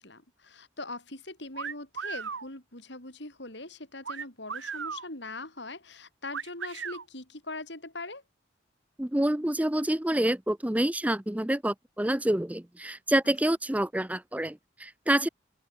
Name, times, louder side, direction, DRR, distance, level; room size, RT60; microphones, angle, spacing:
voice 1, 0.0-8.2, left 2 dB, 65° left, 6.0 m, -41 dB
sound 1, 1.5-2.5 4.0-5.1 6.3-7.0, right 6 dB, 80° right, 1.4 m, -36 dB
voice 2, 9.0-15.3, right 1 dB, 10° right, 0.6 m, -27 dB
open air
head